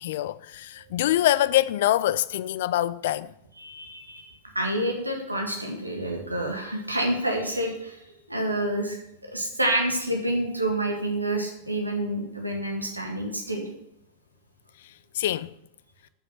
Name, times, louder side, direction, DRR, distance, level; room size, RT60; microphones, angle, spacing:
voice 1, 0.0-3.3 15.1-15.5, left 13 dB, 55° left, 0.4 m, -24 dB
voice 2, 3.6-8.0 8.3-9.0 9.2-13.7, right 1 dB, 85° right, 1.8 m, -28 dB
7.1 x 7.0 x 7.9 m
figure-of-eight pair, 90°, 0 cm